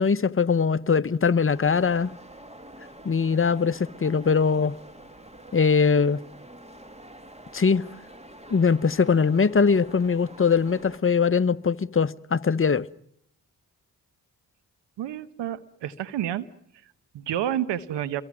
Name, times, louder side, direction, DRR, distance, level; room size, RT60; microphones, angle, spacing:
voice 1, 0.0-2.1 3.0-4.7 5.5-6.2 7.5-7.8 8.5-12.9, left 5 dB, 30° left, 0.9 m, -21 dB
sound 1, 1.5-11.0, right 1 dB, 15° right, 2.2 m, -47 dB
voice 2, 15.0-16.5 16.8-18.2, right 11 dB, 80° right, 1.0 m, -30 dB
29.0 x 23.0 x 6.2 m
supercardioid pair, 40°, 42 cm